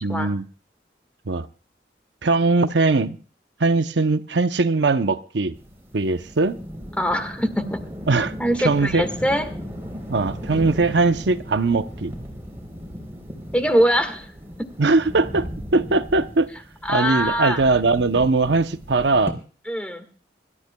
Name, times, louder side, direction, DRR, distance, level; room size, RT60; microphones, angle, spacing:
voice 1, 0.0-0.5 1.3-1.5 2.2-3.2 3.6-5.6 5.9-6.6 8.1-8.3 8.6-9.1 10.1-12.1 14.8-16.5 16.9-19.4, right 3 dB, 80° right, 0.7 m, -20 dB
sound 1, 5.5-19.3, equal, 15° right, 3.6 m, -36 dB
voice 2, 7.0-7.8 8.4-9.4 13.5-14.3 16.8-17.6 19.7-20.0, equal, 5° left, 1.7 m, -22 dB
25.5 x 13.5 x 2.3 m
head